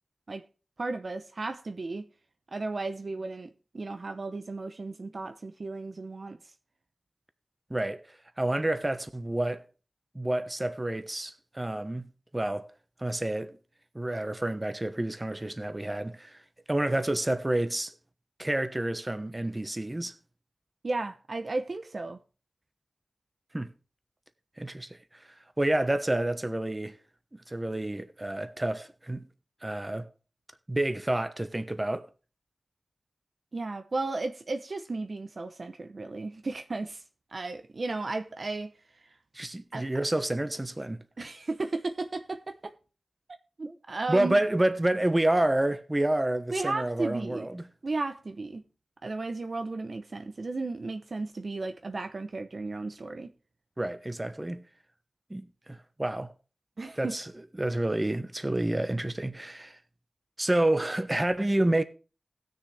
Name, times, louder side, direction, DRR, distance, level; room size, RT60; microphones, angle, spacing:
voice 1, 0.8-2.1 2.5-6.4 20.8-22.2 33.5-37.0 37.3-38.7 39.0-39.1 39.7-39.9 41.2-42.7 43.6-44.4 46.5-47.5 47.8-48.6 49.0-53.3 56.8-57.1, right 3 dB, 60° right, 0.8 m, -34 dB
voice 2, 7.7-9.6 10.1-12.0 12.3-12.7 13.0-13.6 13.9-16.4 16.7-17.9 18.4-20.1 23.5-23.7 24.6-27.0 27.3-29.3 29.6-30.1 30.7-32.1 39.3-41.0 43.7-43.8 44.1-47.7 53.8-54.7 55.3-56.3 57.0-57.3 57.6-59.8 60.4-61.8, right 1 dB, 25° right, 1.1 m, -29 dB
17.5 x 6.5 x 3.4 m
cardioid pair, 50°, 0 cm